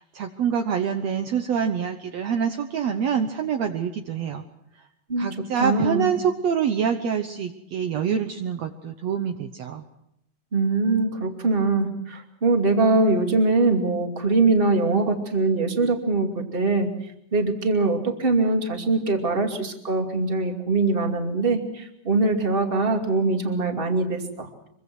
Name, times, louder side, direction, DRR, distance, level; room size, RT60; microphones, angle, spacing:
voice 1, 0.0-4.4 5.2-9.8, right 7 dB, 65° right, 6 dB, 2.1 m, -26 dB
voice 2, 5.6-6.1 10.5-16.9 17.3-24.5, right 3 dB, 20° right, 4 dB, 2.4 m, -22 dB
24.5 x 24.5 x 6.2 m, 0.78 s
omnidirectional pair, 3.6 m